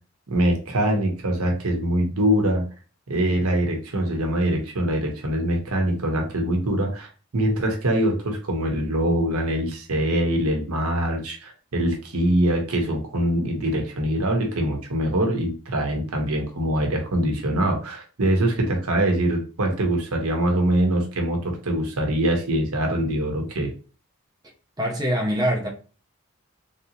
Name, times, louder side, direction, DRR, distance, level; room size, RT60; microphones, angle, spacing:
voice 1, 0.3-2.6 3.1-23.7, right 1 dB, 80° right, 0.9 m, -23 dB
voice 2, 24.8-25.7, equal, 15° right, 0.7 m, -23 dB
3.4 x 2.8 x 2.8 m
head